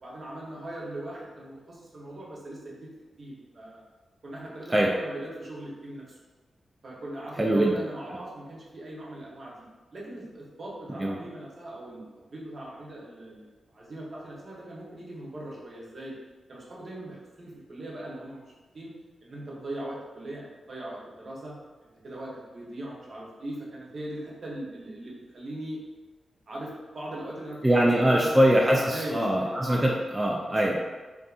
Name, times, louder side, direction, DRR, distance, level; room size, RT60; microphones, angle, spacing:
voice 1, 0.0-2.9 3.2-3.8 4.2-6.2 6.8-9.6 9.9-13.5 13.7-16.1 16.5-18.4 18.7-18.9 19.2-21.5 22.0-25.8 26.5-28.4 28.9-29.9, right 1 dB, 60° right, -4 dB, 0.8 m, -40 dB
voice 2, 7.4-7.7 11.0-11.2 27.6-30.8, right 1 dB, 20° right, -2 dB, 0.4 m, -22 dB
2.6 x 2.5 x 2.4 m, 1.3 s
cardioid pair, 50°, 0 cm